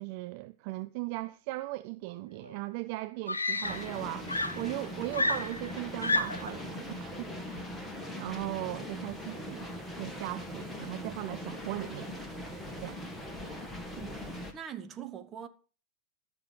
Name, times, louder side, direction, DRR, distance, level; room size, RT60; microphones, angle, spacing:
voice 1, 0.0-7.8 8.2-9.7 10.0-12.1 12.8-13.0, right 19 dB, 45° right, 0.5 m, -38 dB
Screaming, 2.4-2.5 3.3-4.0 4.3-6.6 7.6-7.8, left 2 dB, 80° left, 0.7 m, -31 dB
sound 1, 3.6-14.5, left 1 dB, 5° left, 2.1 m, -41 dB
voice 2, 14.0-15.5, right 8 dB, 25° right, 1.2 m, -43 dB
12.5 x 6.5 x 6.7 m
figure-of-eight pair, 90°, 0 cm